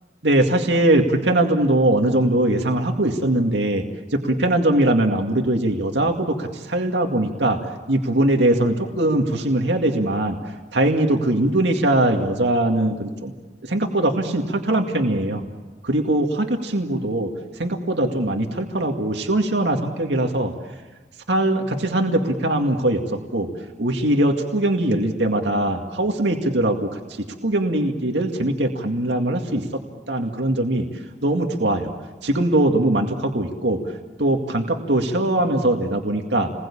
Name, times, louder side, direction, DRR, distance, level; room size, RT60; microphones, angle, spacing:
voice 1, 0.2-3.8 4.1-7.6 7.9-10.4 10.7-13.3 13.6-15.4 15.8-17.3 17.6-20.5 21.3-23.0 23.3-23.5 23.8-29.7 30.1-30.9 31.2-31.9 32.2-33.8 34.2-36.5, right 1 dB, 85° right, 3 dB, 2.2 m, -21 dB
29.5 x 21.5 x 8.7 m, 1.3 s
head